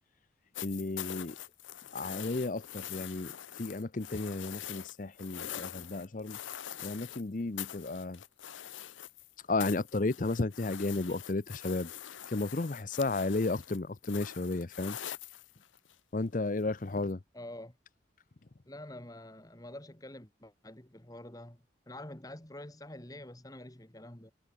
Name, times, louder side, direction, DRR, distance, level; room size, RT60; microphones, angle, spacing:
sound 1, 0.5-7.2 7.6-9.3 9.6-15.9 17.1-17.2, left 11 dB, 80° left, 0.8 m, -44 dB
voice 1, 0.6-1.4 1.9-6.4 6.8-8.2 9.4-15.0 16.1-17.2, left 2 dB, 45° left, 0.7 m, -33 dB
voice 2, 17.3-17.8 18.7-24.3, left 1 dB, 20° left, 1.8 m, -47 dB
head